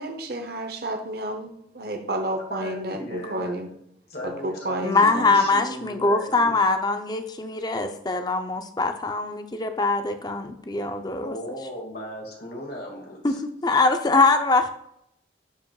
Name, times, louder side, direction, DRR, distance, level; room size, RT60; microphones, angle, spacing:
voice 1, 0.0-3.7 4.2-5.4, right 1 dB, 55° right, 5 dB, 0.8 m, -31 dB
voice 2, 2.5-3.5 4.1-6.5 11.2-13.4, left 1 dB, 55° left, 0 dB, 2.0 m, -36 dB
voice 3, 4.8-11.4 13.2-13.4 13.6-14.7, left 3 dB, 20° left, 7 dB, 0.6 m, -22 dB
11.0 x 5.0 x 2.3 m, 0.74 s
head